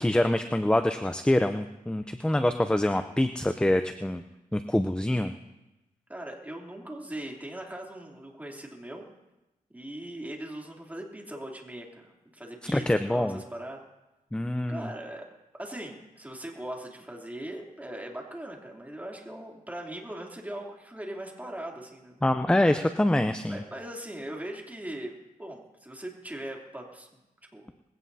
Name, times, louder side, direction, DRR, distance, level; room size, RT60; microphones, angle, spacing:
voice 1, 0.0-4.2 4.5-5.3 12.7-13.4 14.3-14.9 22.2-23.6, left 1 dB, 5° left, 8 dB, 0.6 m, -25 dB
voice 2, 6.1-9.1 9.7-13.8 14.7-15.3 15.6-22.2 23.5-27.1 27.5-27.7, right 1 dB, 10° right, 0 dB, 3.1 m, -40 dB
21.0 x 16.5 x 2.8 m, 1.0 s
cardioid pair, 75°, 14 cm